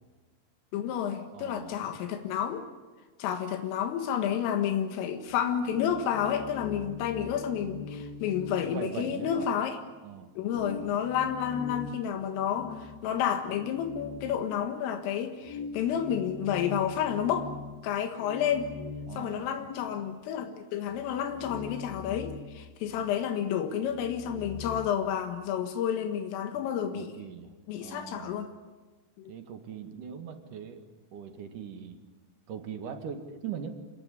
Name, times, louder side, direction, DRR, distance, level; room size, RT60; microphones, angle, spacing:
voice 1, 0.7-2.6 3.2-9.8 10.4-17.5 17.8-18.7 19.2-27.1 27.7-28.5 29.2-29.3, left 9 dB, 85° left, 6 dB, 4.2 m, -30 dB
voice 2, 1.3-1.8 8.7-9.5 10.0-10.3 19.1-19.5 26.5-26.7 26.9-27.5 27.8-28.4 29.3-30.9 31.1-32.0 32.5-33.8, right 7 dB, 55° right, 7 dB, 2.6 m, -40 dB
sound 1, 5.3-9.6 10.0-10.1 10.5-14.9 15.4-20.1 20.4-20.5 20.9-23.4 23.7-24.9, left 5 dB, 65° left, 2.7 m, -42 dB
27.0 x 18.5 x 9.9 m, 1.2 s
omnidirectional pair, 5.8 m